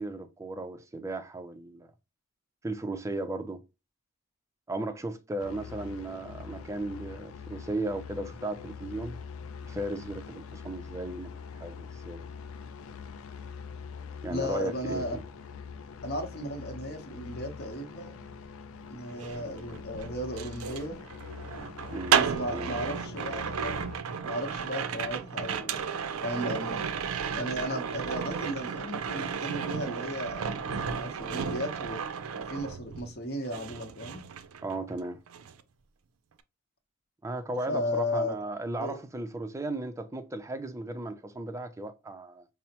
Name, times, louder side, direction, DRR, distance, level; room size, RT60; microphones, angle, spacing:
voice 1, 0.0-1.9 2.6-3.6 4.7-9.2 9.6-12.2 14.2-15.2 21.9-22.2 22.5-22.7 34.6-35.2 37.2-42.5, right 2 dB, 15° right, 0.4 m, -36 dB
sound 1, 5.4-24.0, left 6 dB, 75° left, 0.4 m, -44 dB
voice 2, 14.3-15.2 16.0-18.4 18.9-21.0 22.2-23.8 24.2-25.9 26.2-26.9 27.3-32.1 32.5-34.2 37.7-38.4 38.8-39.0, left 1 dB, 50° left, 0.8 m, -35 dB
sound 2, 19.1-33.2 33.5-35.0 35.3-35.6, right 7 dB, 75° right, 0.4 m, -33 dB
5.5 x 2.0 x 2.8 m
head